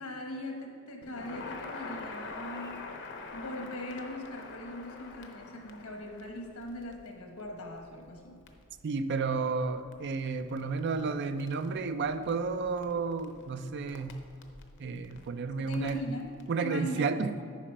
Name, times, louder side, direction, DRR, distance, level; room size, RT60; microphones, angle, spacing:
voice 1, 0.0-2.9 3.3-8.4 15.5-17.4, left 1 dB, 80° left, 2 dB, 1.2 m, -40 dB
Crackle, 1.0-16.5, left 3 dB, 55° left, 0.7 m, -47 dB
voice 2, 8.8-14.2 14.8-16.0 16.5-17.3, right 4 dB, 50° right, 10 dB, 0.4 m, -32 dB
10.0 x 5.1 x 4.5 m, 2.5 s
head